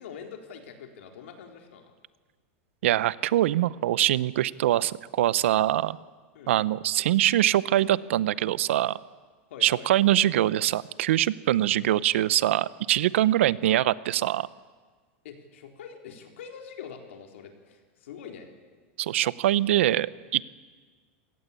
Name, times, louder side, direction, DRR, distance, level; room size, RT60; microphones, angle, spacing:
voice 1, 0.0-1.9 6.3-6.5 9.5-9.9 15.2-18.5, left 7 dB, 90° left, 4 dB, 3.9 m, -44 dB
voice 2, 2.8-6.0 6.5-8.9 9.6-14.5 19.0-20.5, right 13 dB, 85° right, 19 dB, 0.8 m, -23 dB
27.0 x 17.5 x 8.5 m, 1.5 s
supercardioid pair, 165°, 7 cm